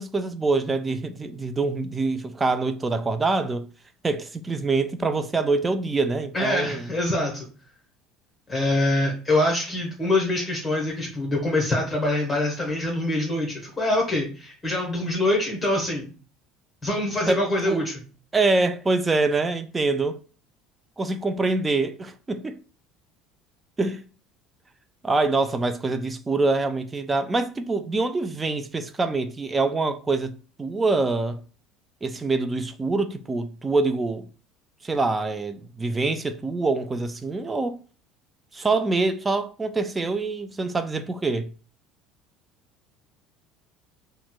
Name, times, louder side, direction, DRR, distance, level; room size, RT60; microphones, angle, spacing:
voice 1, 0.0-3.7 4.0-6.9 17.3-17.9 18.3-20.2 21.0-22.6 23.8-24.0 25.0-30.3 30.6-31.4 32.0-34.3 34.8-37.8 38.5-41.5, right 3 dB, 20° right, 0.3 m, -25 dB
voice 2, 6.3-7.4 8.5-16.1 16.8-17.9, left 1 dB, 20° left, 1.0 m, -24 dB
4.1 x 2.1 x 2.3 m
hypercardioid pair, 65°, 0 cm